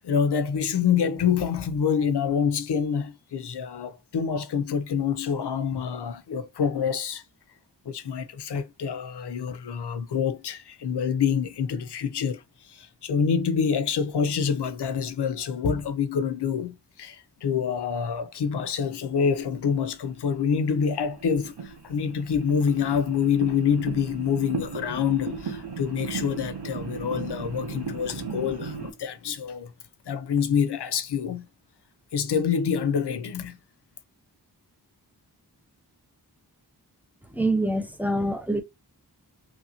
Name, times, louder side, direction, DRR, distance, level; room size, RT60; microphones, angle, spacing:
voice 1, 0.0-7.2 7.9-12.4 12.7-29.7 30.1-31.5 32.1-33.6, left 7 dB, 85° left, 0.5 m, -26 dB
sound 1, 20.2-20.3 21.1-28.9, right 5 dB, 85° right, 0.9 m, -36 dB
voice 2, 37.2-38.6, right 1 dB, 5° right, 0.6 m, -25 dB
3.0 x 2.5 x 2.8 m
wide cardioid pair, 45°, 40 cm